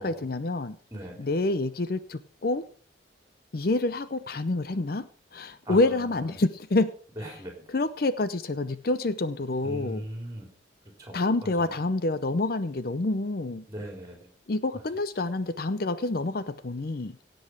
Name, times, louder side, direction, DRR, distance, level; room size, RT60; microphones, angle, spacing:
voice 1, 0.0-0.8 1.2-2.6 3.5-6.9 7.7-10.0 11.1-13.6 14.5-17.2, left 2 dB, 50° left, 0.6 m, -27 dB
voice 2, 0.9-1.3 5.6-6.3 7.2-7.7 9.6-10.5 11.0-11.8 13.7-14.3 14.7-14.8, right 1 dB, 20° right, 4.1 m, -40 dB
17.0 x 7.9 x 4.8 m
head